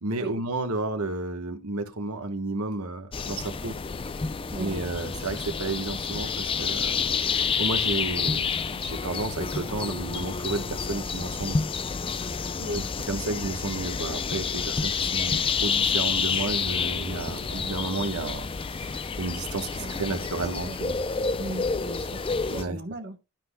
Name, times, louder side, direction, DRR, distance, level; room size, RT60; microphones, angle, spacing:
voice 1, 0.0-3.7 4.6-7.0 7.4-11.7 12.3-21.0 22.5-22.8, right 3 dB, 85° right, 1.2 m, -32 dB
sound 1, 3.1-22.6, left 5 dB, 25° left, 0.4 m, -29 dB
voice 2, 4.5-4.9 12.6-12.8 13.1-13.3 19.8-19.9 20.7-20.8 21.4-22.2 22.5-23.2, right 1 dB, 50° right, 1.0 m, -37 dB
12.0 x 5.9 x 2.2 m
head